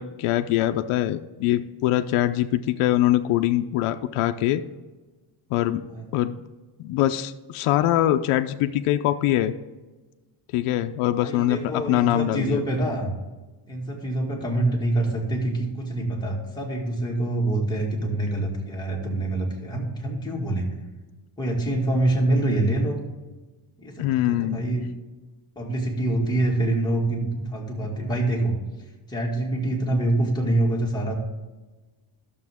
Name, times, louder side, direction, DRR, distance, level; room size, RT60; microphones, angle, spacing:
voice 1, 0.0-4.6 5.5-5.8 6.1-6.3 6.8-9.5 10.5-12.6 24.0-24.6, left 13 dB, 80° left, 7 dB, 0.6 m, -23 dB
voice 2, 11.2-13.1 13.7-20.7 21.4-23.0 23.8-24.8 25.6-28.6 29.1-31.2, right 1 dB, 10° left, -3 dB, 2.1 m, -25 dB
12.0 x 7.0 x 3.6 m, 1.2 s
cardioid pair, 145°, 50 cm